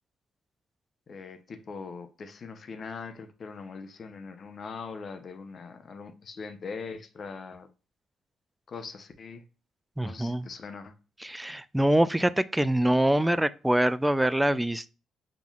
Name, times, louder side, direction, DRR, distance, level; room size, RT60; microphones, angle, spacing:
voice 1, 1.1-7.7 8.7-9.4 10.0-10.9, left 5 dB, 45° left, 0.8 m, -41 dB
voice 2, 10.0-10.5 11.2-14.9, right 1 dB, 5° right, 0.3 m, -24 dB
5.7 x 3.8 x 2.4 m
cardioid pair, 90°, 0 cm